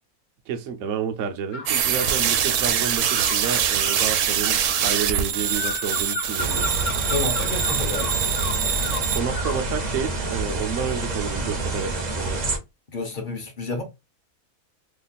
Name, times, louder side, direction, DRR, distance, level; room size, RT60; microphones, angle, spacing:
voice 1, 0.5-6.7 9.0-12.5, right 7 dB, 65° right, 0.9 m, -30 dB
sound 1, 1.5-2.2 3.1-9.7, left 4 dB, 80° left, 1.1 m, -35 dB
sound 2, 1.7-9.2, right 8 dB, 90° right, 1.1 m, -24 dB
sound 3, 6.4-12.6, right 2 dB, 40° right, 0.7 m, -28 dB
voice 2, 7.0-8.3 12.9-13.8, left 3 dB, 40° left, 0.9 m, -30 dB
3.0 x 2.4 x 4.0 m
omnidirectional pair, 1.6 m